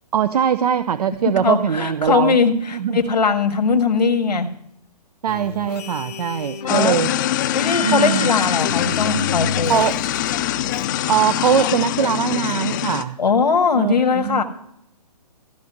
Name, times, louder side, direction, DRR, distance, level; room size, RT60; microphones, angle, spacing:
voice 1, 0.1-2.4 2.7-3.0 5.2-7.1 7.8-8.3 9.7-9.9 11.1-13.2 13.7-14.4, right 8 dB, 70° right, 12 dB, 0.6 m, -21 dB
voice 2, 1.4-4.5 6.7-7.0 7.5-9.8 13.2-14.4, left 5 dB, 90° left, 7 dB, 1.7 m, -20 dB
sound 1, 5.3-10.9, left 6 dB, 70° left, 1.0 m, -30 dB
sound 2, 6.7-13.0, left 12 dB, 30° left, 0.5 m, -23 dB
14.5 x 5.2 x 9.5 m, 0.73 s
hypercardioid pair, 150°, 21 cm